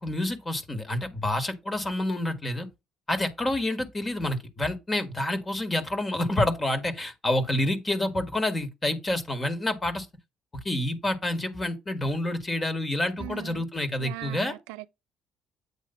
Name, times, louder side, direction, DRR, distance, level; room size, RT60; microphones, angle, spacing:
voice 1, 0.0-2.7 3.1-10.1 10.6-14.5, left 1 dB, 30° left, 1.9 m, -28 dB
voice 2, 13.2-13.7 14.0-14.9, right 21 dB, 85° right, 0.4 m, -40 dB
8.4 x 3.2 x 5.6 m
supercardioid pair, 60°, 0 cm